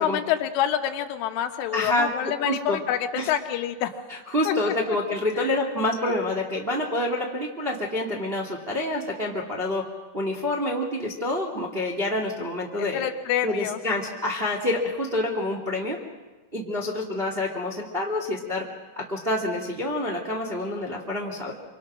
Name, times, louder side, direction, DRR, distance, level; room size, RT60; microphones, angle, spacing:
voice 1, 0.0-4.0 4.5-5.0 5.4-5.6 12.8-13.8, left 10 dB, 90° left, 6 dB, 3.8 m, -27 dB
voice 2, 1.7-2.1 2.4-2.8 3.1-3.3 4.3-9.8 10.1-13.1 13.4-16.0 16.5-18.6 18.9-21.5, left 1 dB, 20° right, 0 dB, 1.4 m, -27 dB
26.0 x 26.0 x 6.3 m, 1.2 s
omnidirectional pair, 5.5 m